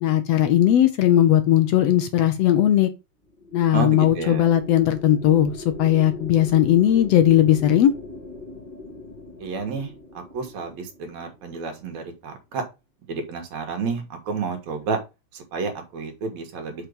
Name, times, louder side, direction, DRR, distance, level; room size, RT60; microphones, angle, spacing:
voice 1, 0.0-2.9 3.5-7.9, left 11 dB, 70° left, 1.7 m, -18 dB
sound 1, 3.2-11.8, left 3 dB, 15° left, 1.7 m, -40 dB
voice 2, 3.7-4.4 9.4-9.9 10.3-12.6 13.1-15.0 15.3-16.9, right 4 dB, 70° right, 3.0 m, -30 dB
6.1 x 5.6 x 5.3 m
omnidirectional pair, 3.4 m